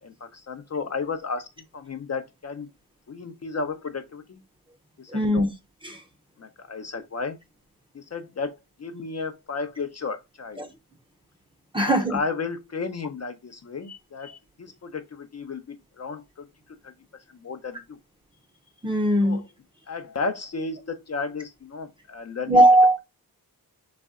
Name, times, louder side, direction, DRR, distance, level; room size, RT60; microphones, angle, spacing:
voice 1, 0.0-1.5 1.7-2.7 3.1-4.4 5.0-5.5 6.4-7.4 7.9-10.6 11.8-16.5 16.8-16.9 17.3-18.0 19.2-19.4 19.9-22.6, left 4 dB, 40° left, 0.6 m, -33 dB
voice 2, 5.1-5.5 5.8-6.0 10.6-10.7 11.7-12.2 18.8-19.4 22.5-23.0, right 1 dB, 15° right, 0.7 m, -19 dB
4.1 x 3.2 x 3.6 m
wide cardioid pair, 150°, 39 cm